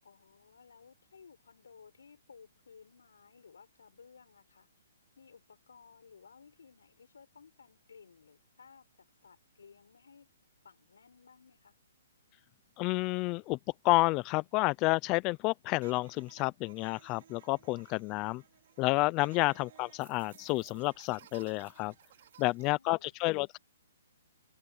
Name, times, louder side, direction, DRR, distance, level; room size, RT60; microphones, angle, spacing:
voice 1, 0.0-4.7 5.2-10.3 10.6-11.8 22.6-23.1, left 6 dB, 85° left, 5.9 m, -58 dB
voice 2, 12.8-13.6 13.8-18.4 18.8-21.9 22.4-23.6, left 23 dB, 25° left, 0.5 m, -30 dB
sound 1, 15.8-22.7, right 10 dB, 55° right, 4.8 m, -58 dB
hypercardioid pair, 155°, 0 cm